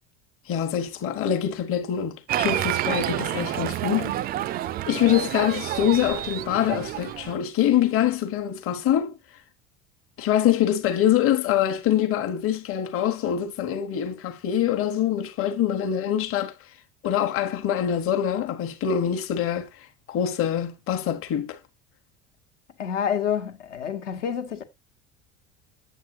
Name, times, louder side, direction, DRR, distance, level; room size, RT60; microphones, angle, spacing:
voice 1, 0.5-4.1 4.9-9.1 10.2-16.5 17.0-19.7 20.1-21.6, left 10 dB, 35° left, 1.1 m, -24 dB
Applause, 2.3-7.3, right 13 dB, 25° right, 0.4 m, -29 dB
voice 2, 22.8-24.6, left 8 dB, 70° left, 1.3 m, -28 dB
7.9 x 7.4 x 2.7 m
figure-of-eight pair, 65°, 38 cm